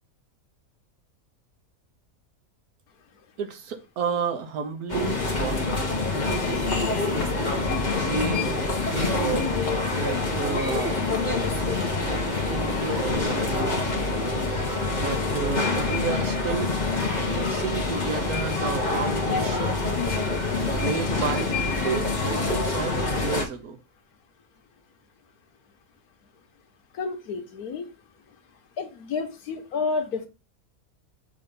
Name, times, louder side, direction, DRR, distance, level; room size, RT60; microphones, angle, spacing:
voice 1, 3.4-5.6 6.1-6.6 8.0-8.5 8.9-9.4 9.9-11.2 12.2-13.9 15.0-16.7 17.3-19.9 20.8-23.8, right 6 dB, 85° right, 1.4 m, -32 dB
sound 1, 4.9-23.5, left 3 dB, 30° left, 1.3 m, -26 dB
voice 2, 27.0-27.9 28.8-30.3, left 4 dB, 85° left, 1.5 m, -30 dB
6.8 x 2.8 x 5.2 m
omnidirectional pair, 1.5 m